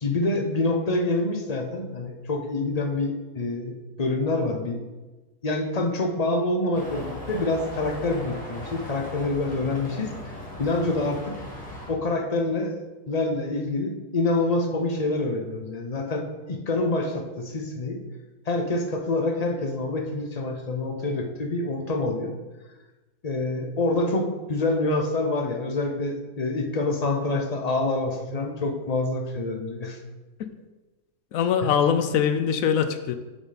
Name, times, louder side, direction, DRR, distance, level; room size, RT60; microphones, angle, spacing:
voice 1, 0.0-4.8 5.4-10.1 10.6-11.3 11.9-12.8 13.1-18.0 18.5-22.3 23.2-30.0 31.6-31.7, left 2 dB, 35° left, 3 dB, 0.7 m, -26 dB
sound 1, 6.7-11.9, left 1 dB, 5° left, 1.9 m, -38 dB
voice 2, 31.3-33.1, left 7 dB, 70° left, 9 dB, 0.9 m, -22 dB
7.1 x 6.9 x 4.0 m, 1.2 s
omnidirectional pair, 1.7 m